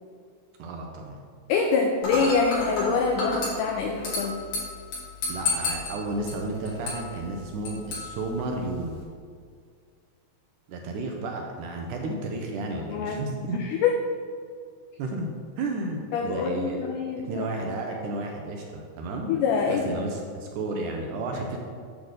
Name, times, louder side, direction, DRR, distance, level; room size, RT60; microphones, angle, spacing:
voice 1, 0.6-1.2 5.3-9.0 10.7-13.6 15.0-15.3 15.6-16.9 17.2-19.3 19.7-21.6, right 2 dB, 75° right, 1 dB, 2.0 m, -32 dB
voice 2, 1.5-4.4 12.9-13.9 16.1-17.7 19.3-20.0, left 5 dB, 80° left, 2 dB, 2.0 m, -25 dB
Dishes pots and pans / Glass, 2.0-9.0, left 3 dB, 60° left, 2.7 m, -33 dB
8.2 x 3.6 x 6.5 m, 2.1 s
omnidirectional pair, 4.0 m